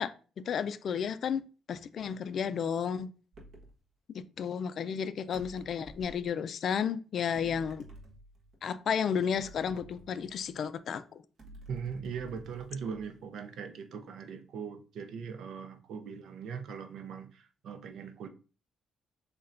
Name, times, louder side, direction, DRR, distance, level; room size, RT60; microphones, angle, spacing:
voice 1, 0.0-3.1 4.1-7.9 8.6-11.2, left 7 dB, 60° left, 0.3 m, -33 dB
sound 1, 3.3-3.8 5.3-6.3 7.3-8.6 9.3-10.7 11.4-13.3, right 1 dB, 60° right, 1.2 m, -52 dB
voice 2, 11.7-18.3, right 6 dB, 75° right, 0.5 m, -40 dB
6.6 x 2.2 x 2.5 m
cardioid pair, 90°, 0 cm